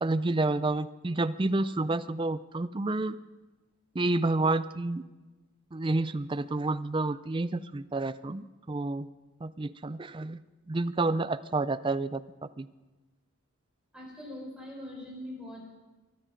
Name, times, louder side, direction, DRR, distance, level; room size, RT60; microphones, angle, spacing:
voice 1, 0.0-3.2 4.0-5.0 5.7-9.1 9.4-10.4 10.7-12.2 12.6-12.7, right 2 dB, 20° right, 15 dB, 0.4 m, -29 dB
voice 2, 13.9-15.7, left 1 dB, 5° right, -3 dB, 4.5 m, -42 dB
23.5 x 10.0 x 5.2 m, 1.2 s
head